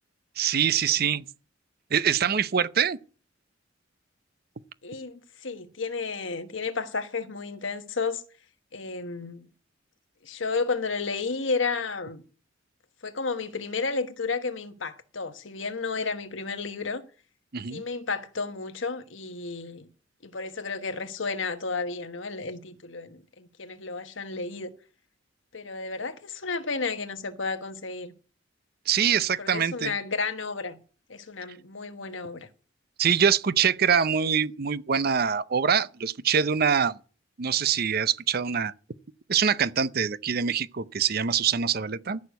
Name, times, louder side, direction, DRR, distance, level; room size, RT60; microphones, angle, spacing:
voice 1, 0.4-1.2 1.9-3.0 17.5-17.8 28.9-29.9 33.0-37.0 37.4-38.7 39.3-42.2, right 7 dB, 50° right, 0.6 m, -24 dB
voice 2, 4.8-8.2 8.7-9.5 10.2-12.2 13.0-17.0 17.7-19.9 20.2-24.7 25.5-28.1 29.4-30.8 31.1-32.5, left 4 dB, 80° left, 1.3 m, -32 dB
14.0 x 6.6 x 8.1 m
head